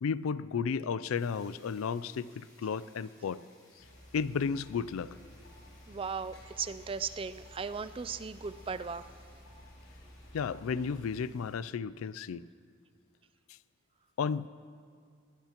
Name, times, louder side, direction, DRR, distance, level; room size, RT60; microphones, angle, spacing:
voice 1, 0.0-3.4 4.1-5.1 10.3-12.5 14.2-14.5, left 6 dB, 85° left, 18 dB, 0.4 m, -33 dB
sound 1, 1.1-11.6, left 1 dB, 20° left, 4.8 m, -63 dB
sound 2, 3.8-11.2, left 1 dB, 55° left, 4.4 m, -53 dB
voice 2, 5.9-9.1, right 5 dB, 25° right, 14 dB, 0.4 m, -37 dB
22.0 x 18.0 x 3.0 m, 2.2 s
head